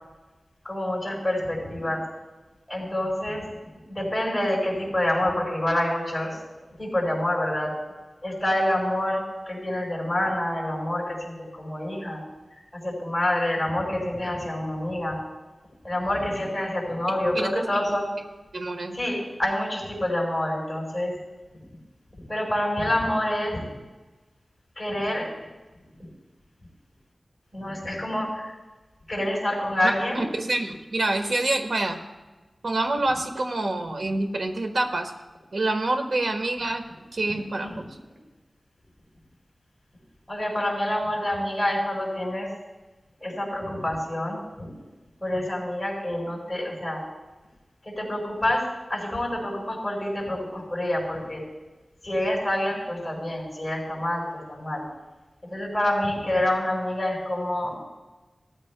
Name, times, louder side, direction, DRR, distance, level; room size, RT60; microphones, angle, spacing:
voice 1, 0.6-2.0 2.7-3.5 3.9-6.4 6.8-7.7 8.2-12.2 12.7-15.2 15.8-18.1 18.9-21.2 22.3-23.6 24.8-25.3 27.5-28.5 29.1-30.2 37.6-37.7 40.3-42.5 43.2-44.7 45.2-47.0 47.8-51.4 52.0-54.8 55.4-57.8, left 1 dB, 20° left, -2 dB, 4.5 m, -27 dB
voice 2, 17.3-17.8 18.5-19.0 30.1-32.0 32.6-35.1 35.5-36.8 37.1-37.8, right 2 dB, 75° right, 5 dB, 1.4 m, -27 dB
19.0 x 13.5 x 2.2 m, 1.2 s
wide cardioid pair, 90°, 0 cm